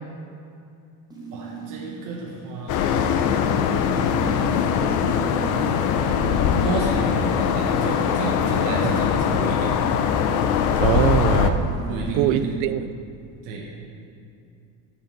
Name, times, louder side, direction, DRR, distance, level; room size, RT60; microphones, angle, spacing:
sound 1, 1.1-12.5, right 2 dB, 10° right, 1.1 m, -37 dB
voice 1, 1.3-3.0 3.9-4.6 6.6-9.7 11.9-12.5 13.4-13.6, right 3 dB, 50° right, -3 dB, 1.3 m, -32 dB
sound 2, 2.7-11.5, left 7 dB, 50° left, 0.6 m, -21 dB
voice 2, 10.8-11.7 12.1-12.9, right 11 dB, 75° right, 14 dB, 0.5 m, -22 dB
7.5 x 6.9 x 6.0 m, 2.5 s
cardioid pair, 170°, 40 cm